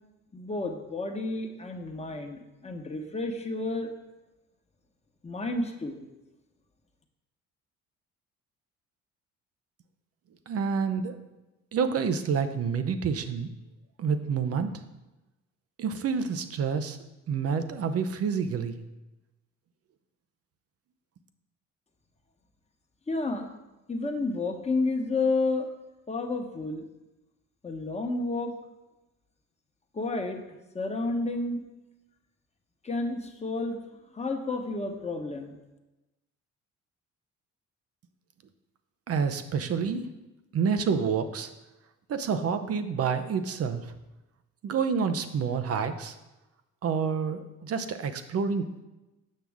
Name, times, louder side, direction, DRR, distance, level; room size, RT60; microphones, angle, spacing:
voice 1, 0.3-3.9 5.2-6.0 23.1-23.5 23.9-25.7 26.1-26.8 27.6-28.5 29.9-30.4 30.7-31.7 32.8-33.8 34.1-35.5, left 3 dB, 20° left, 3 dB, 1.1 m, -30 dB
voice 2, 10.5-11.2 11.7-13.5 14.0-14.7 15.8-17.0 17.3-18.8 39.1-40.1 40.5-41.5 42.1-43.9 44.6-46.1 46.8-48.8, right 6 dB, 50° right, 9 dB, 0.7 m, -28 dB
7.6 x 5.9 x 3.5 m, 1.0 s
supercardioid pair, 65°, 31 cm